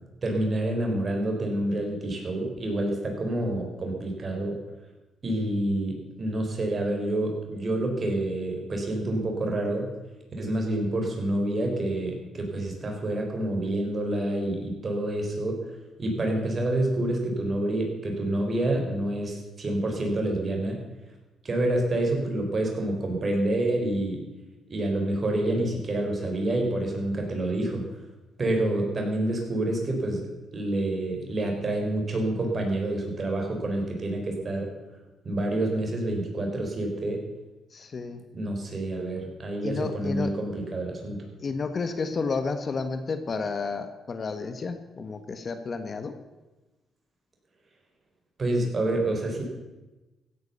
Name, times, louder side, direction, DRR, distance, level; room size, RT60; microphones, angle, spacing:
voice 1, 0.2-4.6 5.2-9.9 10.4-15.6 16.0-20.8 21.4-24.2 24.7-27.8 28.4-30.2 30.5-34.7 35.2-37.2 38.3-41.2 48.4-49.4, right 1 dB, 35° right, 2 dB, 4.5 m, -28 dB
voice 2, 37.7-38.2 39.6-40.3 41.4-46.2, left 4 dB, 40° left, 9 dB, 1.3 m, -31 dB
15.5 x 9.6 x 6.9 m, 1.1 s
cardioid pair, 90°, 0 cm